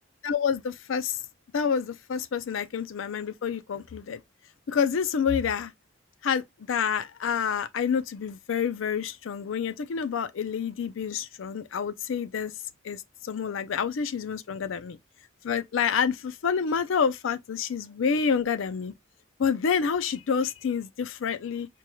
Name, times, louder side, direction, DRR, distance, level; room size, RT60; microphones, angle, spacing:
voice 1, 0.2-1.2 1.5-4.2 4.7-5.7 6.2-12.5 12.8-15.0 15.4-18.9 19.4-21.7, left 6 dB, 70° left, 0.4 m, -28 dB
4.5 x 3.0 x 2.2 m
head